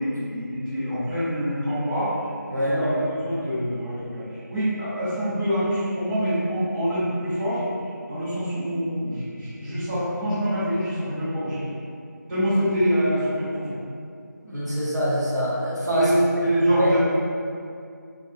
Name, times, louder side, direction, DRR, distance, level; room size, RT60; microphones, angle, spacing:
voice 1, 0.0-2.1 2.5-7.6 8.1-11.8 12.3-13.7 15.9-16.1 16.4-17.0, equal, 45° right, -17 dB, 1.3 m, -25 dB
voice 2, 14.4-16.1 16.8-16.9, equal, 65° right, -7 dB, 0.7 m, -24 dB
2.5 x 2.0 x 2.6 m, 2.3 s
figure-of-eight pair, 170°, 10 cm